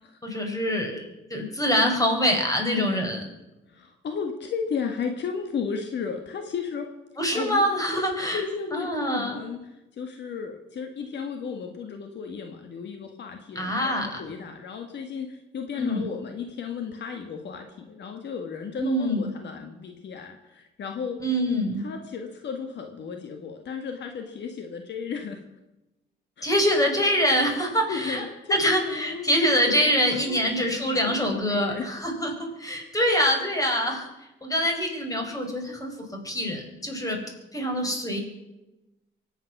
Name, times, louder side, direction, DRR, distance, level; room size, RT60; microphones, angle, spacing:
voice 1, 0.2-3.2 7.2-8.4 8.7-9.4 13.5-14.2 15.8-16.1 18.8-19.3 21.2-21.9 26.4-28.2 28.5-34.1 34.4-37.2 37.5-38.2, equal, 15° left, 3 dB, 4.8 m, -25 dB
voice 2, 3.7-6.9 7.3-21.2 21.8-25.4 26.4-26.5 27.9-31.9 33.0-33.1, left 6 dB, 60° left, 5 dB, 1.7 m, -34 dB
24.0 x 9.2 x 6.0 m, 0.99 s
cardioid pair, 90°, 20 cm